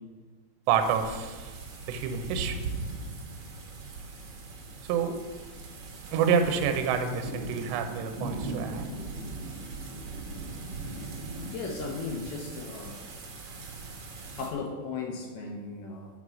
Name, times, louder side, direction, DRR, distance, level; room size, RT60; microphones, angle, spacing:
sound 1, 0.7-14.5, right 3 dB, 60° right, 2.1 m, -39 dB
voice 1, 0.7-1.5 1.9-2.6 4.8-5.2 6.1-8.8, right 7 dB, 80° right, 7 dB, 2.8 m, -28 dB
voice 2, 11.4-13.0 14.4-16.1, left 4 dB, 75° left, 2 dB, 2.5 m, -36 dB
9.6 x 5.4 x 6.2 m, 1.4 s
omnidirectional pair, 5.3 m